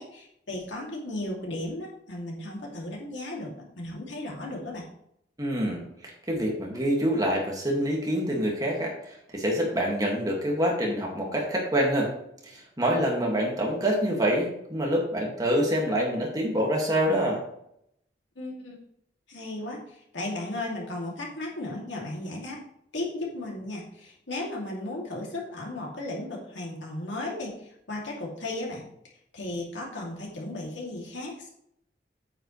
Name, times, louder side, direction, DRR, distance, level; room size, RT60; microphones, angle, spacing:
voice 1, 0.0-4.9 18.4-18.8 19.3-22.6 22.9-28.8 29.3-31.5, left 1 dB, 80° left, -2 dB, 2.6 m, -35 dB
voice 2, 5.4-5.8 6.3-12.1 12.4-17.4, equal, 20° right, -1 dB, 2.0 m, -26 dB
9.1 x 8.0 x 3.2 m, 0.74 s
head